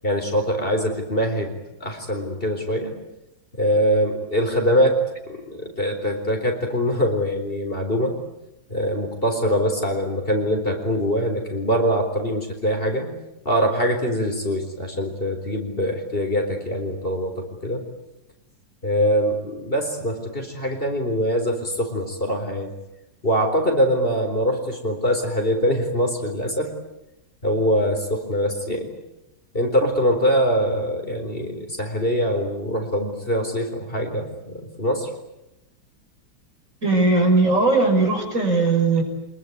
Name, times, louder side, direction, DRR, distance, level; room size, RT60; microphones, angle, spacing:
voice 1, 0.0-1.5 1.8-2.9 3.6-5.0 5.3-8.2 8.7-13.1 13.4-17.8 18.8-22.7 23.2-26.7 27.4-28.9 29.5-35.1, equal, 35° left, 4 dB, 4.4 m, -23 dB
voice 2, 36.8-39.0, right 3 dB, 50° right, 3 dB, 5.9 m, -18 dB
26.0 x 21.5 x 9.6 m, 0.90 s
omnidirectional pair, 1.7 m